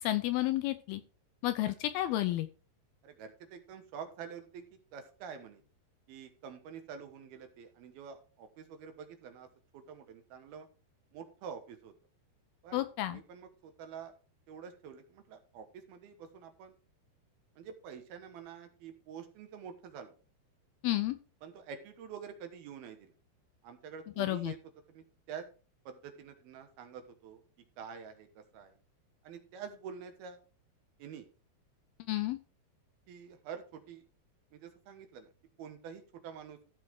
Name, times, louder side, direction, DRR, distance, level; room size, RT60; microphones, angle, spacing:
voice 1, 0.0-1.0 1.4-2.5 12.7-13.2 20.8-21.2 24.2-24.5 32.1-32.4, left 15 dB, 80° left, 11 dB, 2.3 m, -31 dB
voice 2, 3.0-4.7 4.9-5.6 6.1-9.5 9.7-10.7 11.1-11.9 12.6-14.1 14.5-16.7 17.6-20.1 21.4-23.1 23.6-24.6 24.9-25.5 25.9-27.4 27.8-28.8 29.2-30.4 31.0-31.3 33.1-34.0 34.5-35.3 35.6-36.6, right 7 dB, 70° right, 7 dB, 3.0 m, -47 dB
14.0 x 5.6 x 4.7 m, 0.35 s
omnidirectional pair, 4.9 m